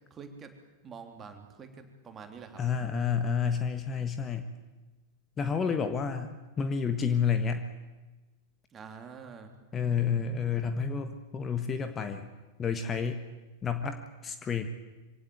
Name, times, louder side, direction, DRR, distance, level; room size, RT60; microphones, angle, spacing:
voice 1, 0.1-0.5 0.8-2.7 8.7-9.5, right 5 dB, 25° right, 6 dB, 3.3 m, -46 dB
voice 2, 2.6-4.5 5.4-7.6 9.7-12.3 12.6-13.2 13.6-14.7, left 6 dB, 20° left, 8 dB, 1.5 m, -30 dB
25.0 x 17.5 x 9.4 m, 1.2 s
figure-of-eight pair, 90°, 0 cm